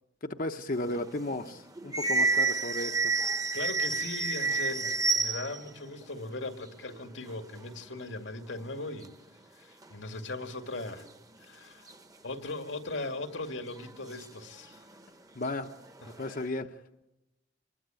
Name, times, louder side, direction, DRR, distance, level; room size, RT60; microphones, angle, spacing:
voice 1, 0.2-3.1 15.3-15.7 16.2-17.0, left 2 dB, 45° left, 0.9 m, -35 dB
sound 1, 0.7-5.7 6.0-6.1 6.3-7.7 8.2-8.3 8.5-9.1 9.8-9.9 10.5-11.4 11.9-12.0 13.1-13.2 13.7-15.1 15.4-16.5, right 4 dB, 20° right, 1.1 m, -31 dB
voice 2, 3.5-9.1 9.5-11.1 11.4-11.9 12.2-14.8 16.0-16.4, left 2 dB, 90° left, 2.2 m, -39 dB
26.5 x 21.0 x 9.0 m
head